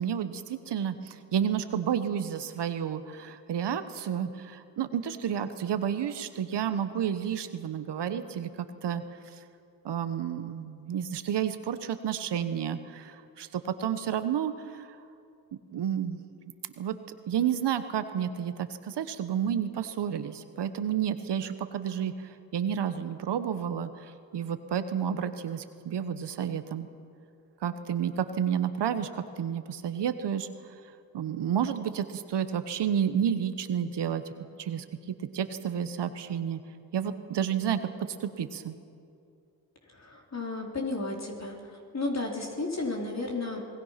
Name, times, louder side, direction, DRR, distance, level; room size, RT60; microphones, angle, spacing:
voice 1, 0.0-9.0 9.3-9.4 9.8-15.0 15.7-16.2 16.8-16.9 17.3-26.9 27.6-30.5 31.1-34.2 34.6-36.6 36.9-38.7, right 8 dB, 70° right, 10 dB, 1.2 m, -31 dB
voice 2, 39.9-41.6 41.9-43.6, left 2 dB, 40° left, 0 dB, 3.9 m, -33 dB
26.0 x 19.5 x 5.9 m, 2.4 s
cardioid pair, 55°, 42 cm